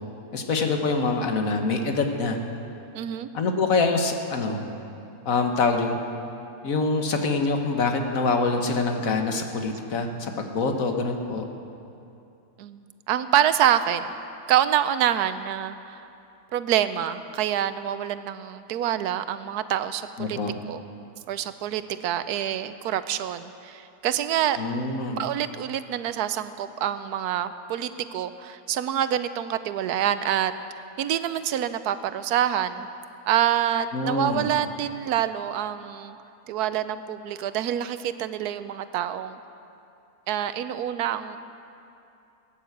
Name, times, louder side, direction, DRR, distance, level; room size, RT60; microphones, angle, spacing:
voice 1, 0.3-2.4 3.3-4.6 5.2-6.0 6.6-11.4 20.2-20.5 24.6-25.2 33.9-34.5, left 3 dB, 60° left, 4 dB, 1.6 m, -25 dB
voice 2, 2.9-3.3 12.6-14.1 14.5-16.0 16.5-20.4 20.7-20.8 21.3-24.6 25.2-30.5 31.0-32.9 33.3-36.2 36.5-39.4 40.3-41.4, right 10 dB, 80° right, 12 dB, 1.1 m, -26 dB
16.5 x 9.4 x 7.9 m, 2.7 s
omnidirectional pair, 1.7 m